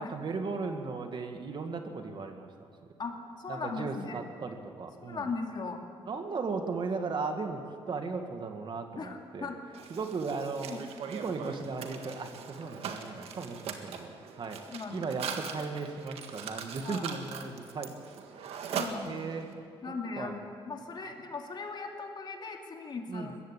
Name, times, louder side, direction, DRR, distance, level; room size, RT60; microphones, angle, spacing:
voice 1, 0.0-2.7 3.5-5.3 6.0-7.6 7.9-9.5 9.9-10.8 11.1-14.1 14.4-14.6 14.9-17.9 18.4-18.6 19.1-19.5 19.9-20.3 23.1-23.3, right 4 dB, 50° right, 5 dB, 2.1 m, -36 dB
voice 2, 3.0-4.2 5.0-5.8 9.0-9.6 10.7-10.8 14.7-15.3 16.8-17.1 18.7-19.2 19.8-23.3, left 4 dB, 50° left, 3 dB, 2.7 m, -38 dB
Mechanisms, 9.7-19.5, right 6 dB, 85° right, 1.8 m, -41 dB
21.0 x 15.5 x 8.5 m, 2.5 s
cardioid pair, 90°, 10 cm